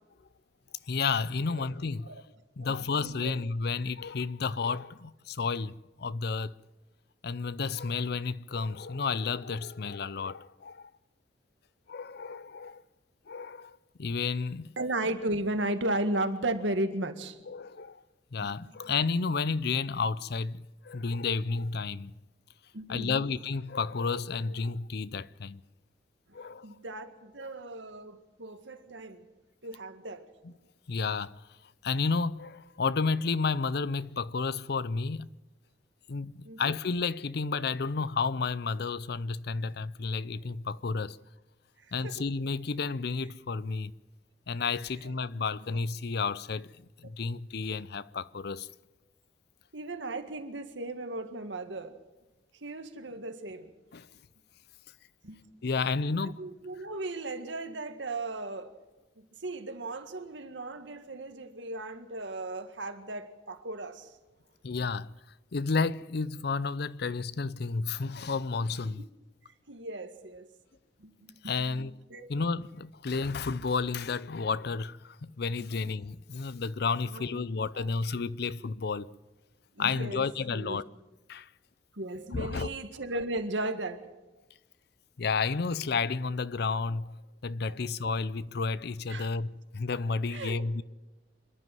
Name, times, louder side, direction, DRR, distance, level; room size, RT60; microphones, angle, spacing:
voice 1, 0.9-2.2 2.6-6.5 7.2-10.9 11.9-12.8 13.3-14.7 17.5-18.0 18.3-22.1 22.9-25.6 26.3-26.7 27.4-27.5 30.4-30.5 30.9-31.4 31.8-35.3 36.1-41.2 41.9-43.9 44.5-48.7 53.9-54.1 55.6-56.4 64.6-65.1 65.5-69.0 71.4-71.9 72.3-79.1 79.8-80.8 81.3-81.5 82.3-82.7 85.2-87.1 87.4-90.8, left 4 dB, 60° left, 0.6 m, -31 dB
voice 2, 2.6-3.3 14.8-17.4 18.4-18.8 22.7-23.3 26.6-29.3 29.6-30.3 36.4-36.7 42.0-42.2 45.0-45.1 49.7-52.0 52.6-53.7 55.2-55.5 56.2-58.7 59.4-64.1 69.0-69.1 69.7-70.5 71.0-71.7 72.1-72.3 75.6-75.7 77.1-77.4 77.7-77.9 79.8-80.8 81.9-84.1 87.6-87.8 89.1-89.3 90.3-90.6, right 2 dB, 80° right, 1.8 m, -36 dB
26.5 x 11.0 x 9.3 m
head